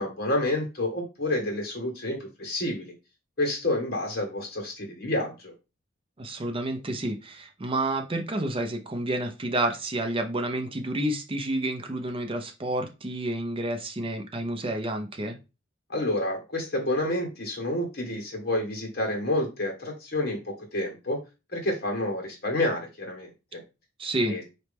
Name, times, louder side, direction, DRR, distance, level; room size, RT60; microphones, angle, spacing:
voice 1, 0.0-2.8 3.4-5.5 15.9-21.2 21.5-23.6 24.3-24.4, left 1 dB, 50° left, 1.6 m, -29 dB
voice 2, 6.2-15.4 24.0-24.3, right 1 dB, 25° right, 0.6 m, -29 dB
4.2 x 3.1 x 3.4 m
head